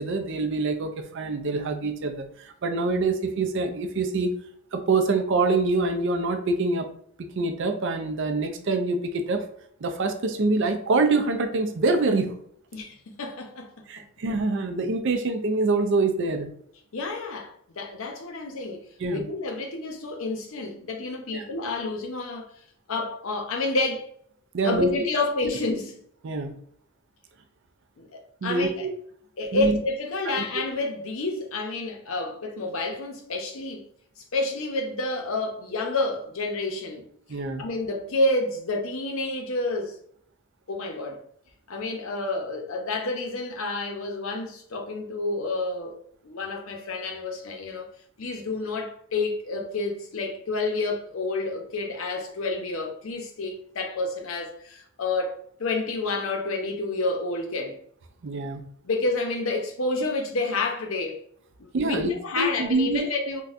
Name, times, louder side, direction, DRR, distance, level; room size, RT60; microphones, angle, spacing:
voice 1, 0.0-4.3 4.7-6.9 7.2-9.4 9.8-12.4 13.9-16.5 19.0-19.3 21.3-21.5 24.5-24.9 26.2-26.5 28.4-28.9 29.5-29.8 30.3-30.4 37.3-37.6 58.2-58.6 61.7-63.0, right 3 dB, 55° right, 0.4 m, -25 dB
voice 2, 12.7-13.7 16.9-18.8 19.1-22.5 22.9-24.1 24.6-26.0 28.0-28.9 29.4-33.9 34.3-37.1 37.6-39.9 40.7-41.2 41.7-46.0 46.2-47.9 48.2-57.8 58.8-61.2 61.6-63.4, left 2 dB, 65° left, 0.6 m, -29 dB
4.0 x 2.2 x 2.4 m
head